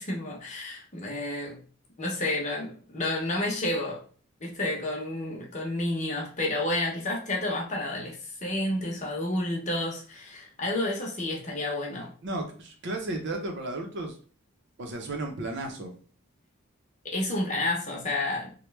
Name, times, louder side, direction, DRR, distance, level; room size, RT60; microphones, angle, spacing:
voice 1, 0.0-1.6 2.0-4.0 4.4-12.1 17.0-18.5, left 1 dB, 35° left, -1 dB, 0.8 m, -30 dB
voice 2, 12.2-14.2 14.8-15.9, right 2 dB, 55° right, 3 dB, 0.7 m, -34 dB
3.0 x 2.2 x 3.3 m, 0.41 s
head